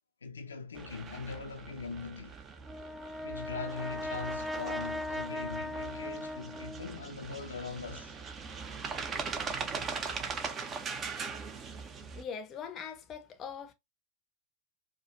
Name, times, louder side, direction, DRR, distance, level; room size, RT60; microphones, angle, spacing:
voice 1, 0.2-2.4 3.2-8.1, left 4 dB, 70° left, 0.5 m, -41 dB
sound 1, 0.8-12.2, right 5 dB, 25° right, 0.7 m, -40 dB
Brass instrument, 2.6-7.1, left 1 dB, ahead, 0.3 m, -38 dB
voice 2, 12.1-13.7, left 7 dB, 30° left, 0.7 m, -41 dB
4.9 x 2.3 x 2.9 m
figure-of-eight pair, 90°, 0 cm